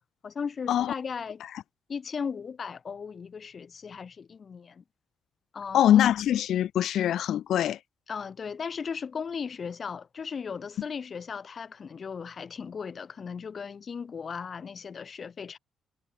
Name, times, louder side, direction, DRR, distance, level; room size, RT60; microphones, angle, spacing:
voice 1, 0.2-1.4 1.9-4.8 5.5-5.9 8.1-15.6, left 6 dB, 45° left, 4.1 m, -37 dB
voice 2, 5.7-7.8, left 11 dB, 70° left, 0.9 m, -23 dB
cardioid pair, 90°, 0 cm